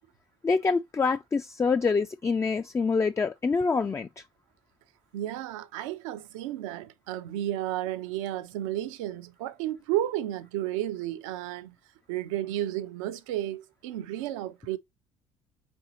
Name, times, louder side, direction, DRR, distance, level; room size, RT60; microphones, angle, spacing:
voice 1, 0.4-4.1, left 4 dB, 15° left, 0.3 m, -26 dB
voice 2, 5.1-11.8 12.1-14.8, right 13 dB, 75° right, 0.6 m, -32 dB
4.3 x 3.9 x 2.8 m
hypercardioid pair, 55°, 17 cm